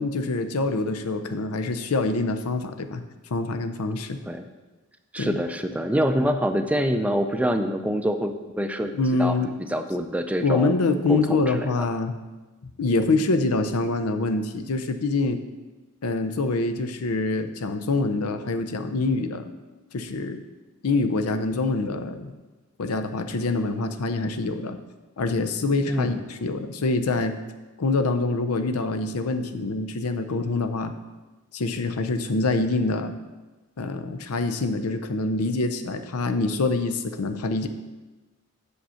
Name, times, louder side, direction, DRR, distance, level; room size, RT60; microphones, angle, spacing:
voice 1, 0.0-3.0 3.3-4.2 5.2-5.4 8.9-9.5 10.4-12.2 12.8-15.4 16.0-19.4 19.9-20.4 20.8-22.3 22.8-24.8 25.2-27.4 27.8-30.9 31.5-33.1 33.8-37.7, left 3 dB, 90° left, 8 dB, 0.6 m, -25 dB
voice 2, 5.1-8.9 9.2-9.4 9.7-10.7 11.1-11.7 25.9-26.2, equal, 5° right, 6 dB, 0.4 m, -25 dB
6.6 x 5.2 x 5.6 m, 1.2 s
head